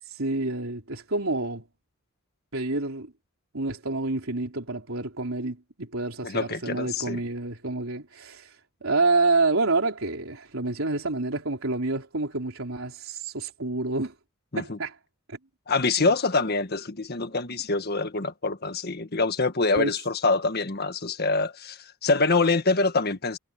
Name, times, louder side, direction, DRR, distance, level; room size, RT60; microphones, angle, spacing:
voice 1, 0.1-1.6 2.5-3.1 3.5-14.1 14.6-15.0 15.3-15.4 16.0-16.1 19.8-19.9, right 3 dB, 85° right, 3.6 m, -28 dB
voice 2, 6.2-7.2 14.5-14.8 15.7-23.4, left 3 dB, 50° left, 1.6 m, -25 dB
head